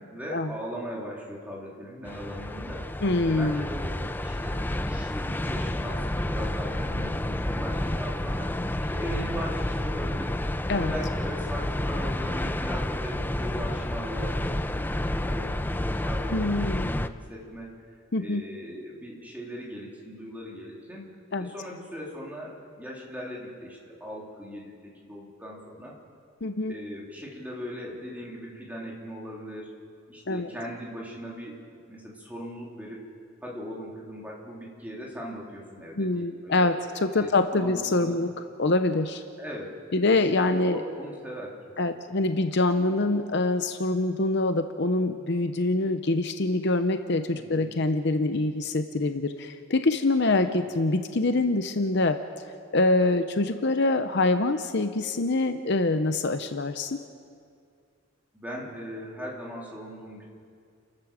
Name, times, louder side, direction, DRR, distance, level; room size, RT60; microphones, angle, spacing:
voice 1, 0.0-2.8 3.2-3.9 4.2-8.5 8.9-10.4 10.7-17.7 18.2-21.1 21.4-24.7 25.0-25.9 26.7-29.7 30.1-33.0 33.4-36.7 37.1-38.2 39.4-39.8 40.6-41.6 47.3-47.7 58.3-60.2, equal, 5° right, -4 dB, 3.5 m, -39 dB
sound 1, 2.0-17.1, left 1 dB, 10° left, 0.4 m, -30 dB
voice 2, 3.0-3.6 10.7-10.9 16.3-16.9 18.1-18.4 21.3-21.5 26.4-26.7 30.3-30.5 36.0-36.8 37.0-38.3 38.6-39.2 39.9-40.8 41.8-52.2 52.7-57.0, left 2 dB, 50° left, 8 dB, 0.7 m, -25 dB
30.0 x 12.0 x 7.4 m, 2.3 s
head